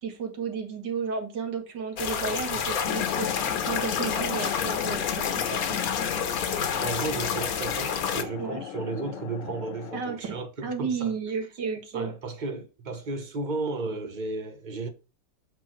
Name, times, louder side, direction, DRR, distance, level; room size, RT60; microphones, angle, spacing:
voice 1, 0.0-5.8 8.4-8.6 9.9-10.4 10.6-12.1, right 6 dB, 80° right, 2.3 m, -33 dB
sound 1, 2.0-8.2, left 7 dB, 60° left, 1.3 m, -29 dB
sound 2, 2.8-10.0, left 11 dB, 75° left, 0.7 m, -35 dB
voice 2, 6.8-11.1 11.9-14.9, right 3 dB, 35° right, 0.9 m, -34 dB
8.1 x 4.2 x 4.4 m
omnidirectional pair, 1.9 m